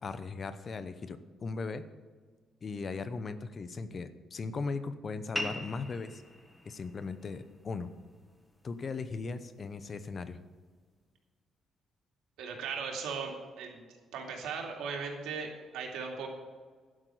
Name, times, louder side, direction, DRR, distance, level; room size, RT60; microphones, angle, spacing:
voice 1, 0.0-1.8 2.6-6.2 6.6-7.9 8.6-10.4, left 4 dB, 40° left, 12 dB, 0.8 m, -38 dB
sound 1, 5.3-10.4, equal, 10° left, 1.5 m, -44 dB
voice 2, 12.4-13.8 14.1-16.3, right 5 dB, 85° right, 1 dB, 2.5 m, -38 dB
11.5 x 5.9 x 9.1 m, 1.5 s
cardioid pair, 90°, 0 cm